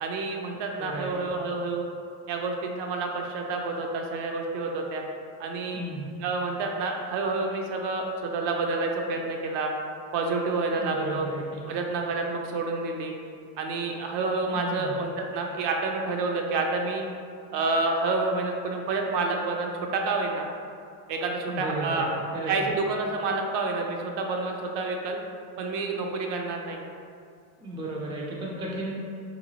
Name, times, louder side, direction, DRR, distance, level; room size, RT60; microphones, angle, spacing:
voice 1, 0.0-1.8 2.3-5.0 5.4-5.8 6.2-9.7 10.1-11.3 11.7-13.1 13.6-17.1 17.5-20.4 21.1-22.1 22.5-25.2 25.6-26.9, right 3 dB, 65° right, 2 dB, 0.5 m, -29 dB
voice 2, 0.8-1.3 5.7-6.1 10.8-11.6 14.5-15.0 21.5-22.1 22.3-22.7 27.6-28.9, right 2 dB, 10° right, -4 dB, 0.3 m, -34 dB
2.9 x 2.3 x 2.6 m, 2.3 s
supercardioid pair, 100°, 47 cm